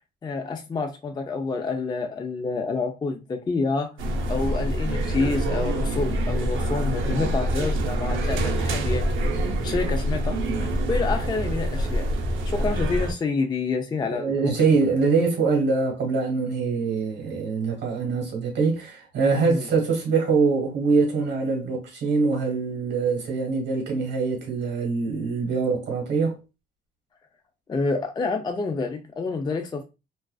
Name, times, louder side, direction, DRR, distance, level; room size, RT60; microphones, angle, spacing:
voice 1, 0.2-4.0 4.3-9.1 9.6-10.4 10.9-12.1 12.5-14.5 19.5-19.7 27.7-29.8, left 4 dB, 20° left, 0.4 m, -28 dB
sound 1, 4.0-13.1, right 1 dB, 80° right, 0.6 m, -25 dB
voice 2, 14.1-26.4, right 4 dB, 60° right, 1.3 m, -24 dB
2.3 x 2.3 x 2.3 m
cardioid pair, 90°, 20 cm